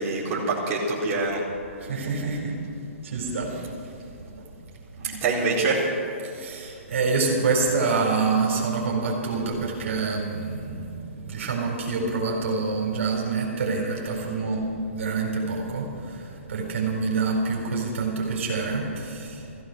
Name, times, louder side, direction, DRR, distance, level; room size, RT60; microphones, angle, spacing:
voice 1, 0.0-1.4 5.0-5.9, right 3 dB, 35° right, -6 dB, 4.1 m, -25 dB
voice 2, 1.8-2.6 3.0-3.5 6.2-14.7 14.9-19.6, right 4 dB, 70° right, -1 dB, 4.4 m, -27 dB
15.5 x 14.5 x 6.3 m, 2.5 s
hypercardioid pair, 130°, 7 cm